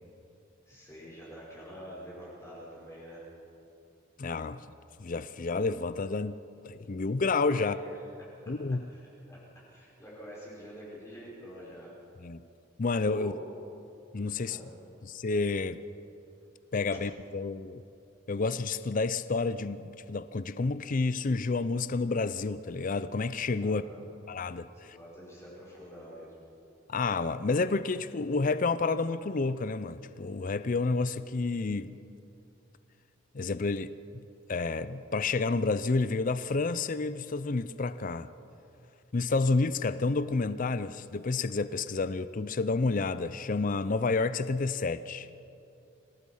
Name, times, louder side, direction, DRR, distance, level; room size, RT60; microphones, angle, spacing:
voice 1, 0.7-3.3 7.6-8.3 8.9-9.4 9.7-11.9 13.1-13.4 14.4-14.7 23.6-24.0 24.7-26.3, equal, 15° left, -7 dB, 5.3 m, -47 dB
voice 2, 4.2-4.6 5.0-6.4 6.6-7.8 8.5-8.9 12.2-12.4 12.8-13.3 14.1-14.6 15.0-15.8 16.7-17.8 18.3-23.8 24.3-25.0 26.9-31.9 33.3-33.9 34.5-38.3 39.1-45.3, left 3 dB, 40° left, 14 dB, 0.5 m, -30 dB
27.0 x 18.5 x 5.6 m, 2.7 s
head